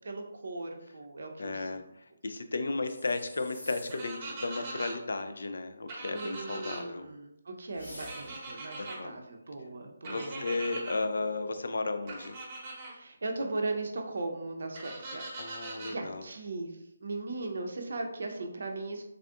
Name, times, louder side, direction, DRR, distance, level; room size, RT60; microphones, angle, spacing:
voice 1, 0.0-1.9 6.1-10.4 12.9-19.0, right 2 dB, 60° right, 3 dB, 0.5 m, -38 dB
voice 2, 1.4-1.8 2.2-7.1 8.8-9.2 10.0-12.4 15.4-16.2, left 3 dB, 65° left, 8 dB, 0.3 m, -34 dB
sound 1, 2.8-4.2 7.7-8.5, equal, 85° left, 1.4 m, -48 dB
sound 2, 3.9-4.9 5.9-6.8 8.0-9.0 10.0-11.0 12.1-12.9 14.7-15.9, right 2 dB, 30° right, 0.8 m, -41 dB
3.3 x 2.4 x 2.4 m, 0.82 s
figure-of-eight pair, 150°, 0 cm